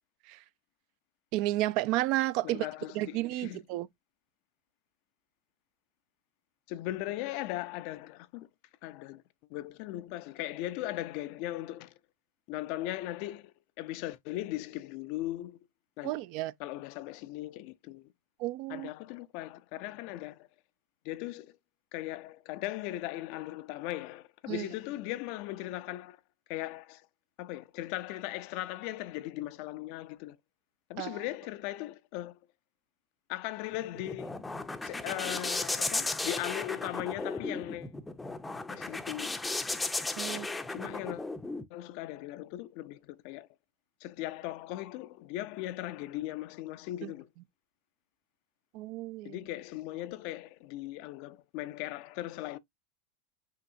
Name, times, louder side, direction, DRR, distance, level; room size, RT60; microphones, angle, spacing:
voice 1, 1.3-2.7 2.9-3.9 16.0-16.5 18.4-18.9 24.5-24.7 31.0-31.2 40.2-40.9 47.0-47.1 48.7-49.4, right 16 dB, 55° right, 0.4 m, -32 dB
voice 2, 2.4-3.6 6.7-8.5 8.8-9.2 9.5-12.0 12.5-15.6 16.0-16.2 16.6-18.1 18.7-20.5 21.0-21.6 21.9-26.2 26.5-27.1 27.4-30.4 30.9-32.4 33.3-34.3 34.8-37.9 38.7-39.3 40.3-41.3 41.7-43.5 44.0-47.3 49.2-52.6, left 15 dB, 55° left, 0.4 m, -38 dB
sound 1, 33.7-41.6, left 2 dB, 10° left, 0.5 m, -35 dB
5.7 x 2.8 x 2.6 m
figure-of-eight pair, 85°, 0 cm